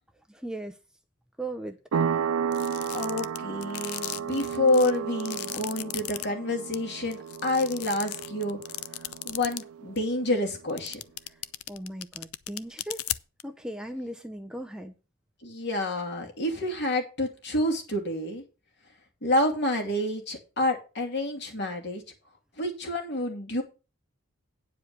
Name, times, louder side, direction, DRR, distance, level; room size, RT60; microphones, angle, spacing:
voice 1, 0.3-0.8 1.4-2.0 11.3-11.4 11.7-13.1 13.4-14.9, right 1 dB, 5° right, 0.6 m, -38 dB
sound 1, 1.9-10.3, right 7 dB, 85° right, 0.4 m, -33 dB
sound 2, 2.5-6.2 6.7-6.8 7.1-9.6 10.0-10.1 10.7-13.4, left 15 dB, 85° left, 0.5 m, -35 dB
voice 2, 2.9-8.6 9.2-11.0 15.4-18.4 19.2-22.0 22.6-23.6, left 1 dB, 55° left, 2.5 m, -28 dB
9.6 x 4.9 x 6.7 m
head